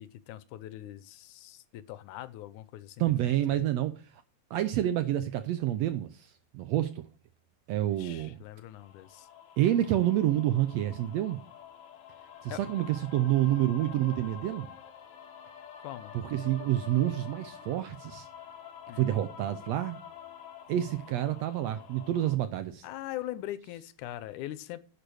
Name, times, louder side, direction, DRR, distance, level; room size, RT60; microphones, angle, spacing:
voice 1, 0.0-3.6 7.9-9.3 12.5-12.6 15.8-16.1 18.9-19.1 22.8-24.8, left 14 dB, 80° left, 2.1 m, -42 dB
voice 2, 3.0-3.9 4.5-7.0 7.7-8.4 9.6-11.4 12.4-14.7 16.1-18.3 19.0-20.0 20.7-22.9, right 13 dB, 80° right, 1.6 m, -28 dB
sound 1, 8.8-22.3, left 8 dB, 60° left, 1.7 m, -48 dB
10.5 x 5.2 x 6.3 m
omnidirectional pair, 3.6 m